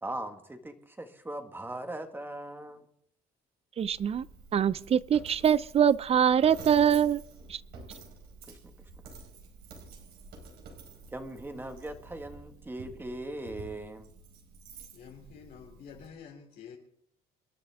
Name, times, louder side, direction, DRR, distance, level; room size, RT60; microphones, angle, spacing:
voice 1, 0.0-2.9 8.5-8.7 11.1-14.1, right 1 dB, 10° right, 1.9 m, -39 dB
voice 2, 3.8-4.2 4.5-7.2 7.5-7.6, right 8 dB, 35° right, 0.6 m, -24 dB
Coin (dropping), 3.8-16.1, right 4 dB, 75° right, 4.6 m, -49 dB
voice 3, 14.9-16.8, left 7 dB, 65° left, 3.2 m, -48 dB
27.5 x 11.0 x 3.6 m
cardioid pair, 110°, 17 cm